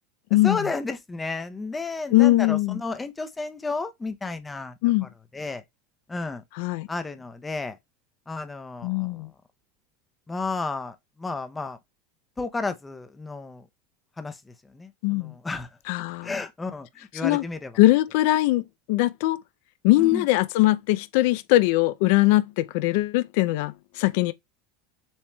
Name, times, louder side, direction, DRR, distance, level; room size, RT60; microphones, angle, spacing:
voice 1, 0.3-5.6 6.1-6.4 6.9-7.8 8.3-9.3 10.3-11.8 12.4-13.6 14.2-15.7 16.2-17.8 20.0-20.3, left 3 dB, 10° left, 0.5 m, -32 dB
voice 2, 2.1-2.8 4.8-5.1 6.6-6.9 8.8-9.3 15.0-15.3 15.9-16.3 17.2-17.4 17.8-19.4 19.8-24.3, left 18 dB, 65° left, 0.3 m, -21 dB
7.1 x 3.0 x 2.2 m
supercardioid pair, 140°, 0 cm